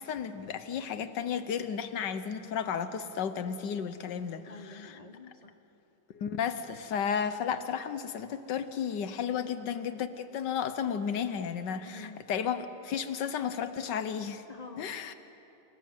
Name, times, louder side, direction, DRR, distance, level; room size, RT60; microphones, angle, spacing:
voice 1, 0.0-5.0 6.1-14.4 14.8-15.1, left 7 dB, 75° left, 11 dB, 1.6 m, -33 dB
voice 2, 4.5-5.6 11.7-12.2 14.5-14.9, left 3 dB, 30° left, 7 dB, 0.8 m, -48 dB
27.5 x 17.5 x 7.8 m, 3.0 s
omnidirectional pair, 1.9 m